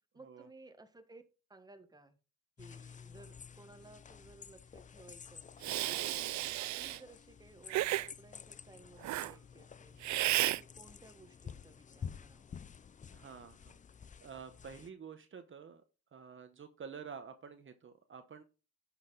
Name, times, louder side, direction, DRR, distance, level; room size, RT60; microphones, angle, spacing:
voice 1, 0.1-1.2 1.5-2.2 2.6-12.5, right 2 dB, 15° right, 7 dB, 1.4 m, -58 dB
sound 1, 2.6-14.9, left 6 dB, 25° left, 0.4 m, -51 dB
Hiss, 5.6-7.0 7.7-8.1 9.0-9.3 10.0-10.6, right 16 dB, 70° right, 0.5 m, -33 dB
voice 2, 13.1-13.8 14.2-15.8 16.1-18.4, right 6 dB, 40° right, 8 dB, 1.1 m, -49 dB
10.5 x 5.9 x 4.1 m, 0.32 s
cardioid pair, 90°, 30 cm